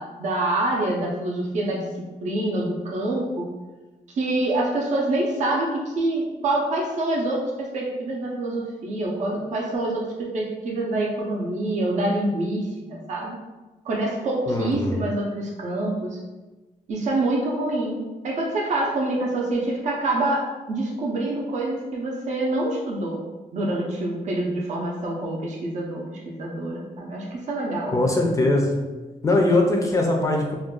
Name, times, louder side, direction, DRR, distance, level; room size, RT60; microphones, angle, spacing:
voice 1, 0.0-3.5 4.1-13.4 13.8-16.2 16.9-23.2 23.5-27.9, right 2 dB, 55° right, -2 dB, 0.5 m, -26 dB
voice 2, 14.5-15.0 27.9-28.7 29.2-30.6, left 2 dB, 25° left, 1 dB, 0.4 m, -21 dB
2.4 x 2.2 x 3.6 m, 1.2 s
wide cardioid pair, 155°, 14 cm